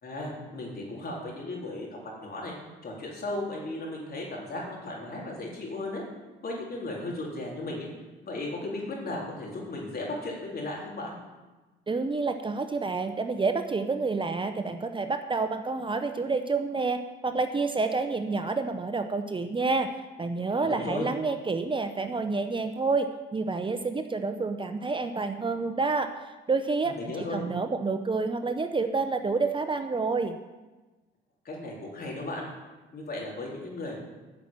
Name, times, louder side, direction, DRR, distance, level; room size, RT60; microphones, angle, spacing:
voice 1, 0.0-2.5 2.8-6.0 6.4-7.9 8.2-11.2 20.6-21.1 26.8-27.4 31.4-32.5 32.9-34.0, left 2 dB, 50° left, -2 dB, 4.0 m, -35 dB
voice 2, 11.9-17.0 17.2-19.9 20.2-26.1 26.5-30.4, right 4 dB, 25° right, 8 dB, 0.8 m, -28 dB
11.5 x 5.9 x 8.9 m, 1.2 s
cardioid pair, 90°, 20 cm